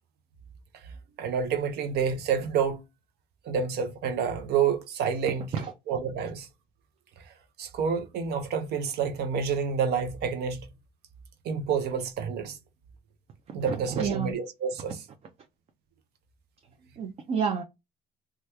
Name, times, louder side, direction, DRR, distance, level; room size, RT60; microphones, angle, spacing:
voice 1, 1.2-2.8 3.4-6.5 7.6-10.7 11.4-12.6 13.5-15.0, right 6 dB, 75° right, 0.7 m, -28 dB
voice 2, 13.7-14.3 17.0-17.6, right 6 dB, 40° right, 0.5 m, -29 dB
2.9 x 2.3 x 3.3 m
cardioid pair, 110°, 17 cm